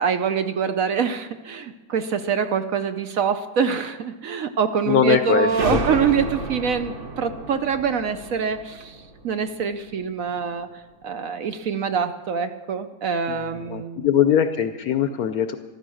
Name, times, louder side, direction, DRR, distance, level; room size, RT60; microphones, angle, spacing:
voice 1, 0.0-10.7 11.0-14.1, right 6 dB, 65° right, 9 dB, 0.9 m, -25 dB
voice 2, 4.9-5.8 13.3-15.6, left 9 dB, 65° left, 9 dB, 1.0 m, -21 dB
sound 1, 5.5-9.9, right 2 dB, 35° right, 1.0 m, -31 dB
14.5 x 12.5 x 6.3 m, 1.2 s
omnidirectional pair, 2.0 m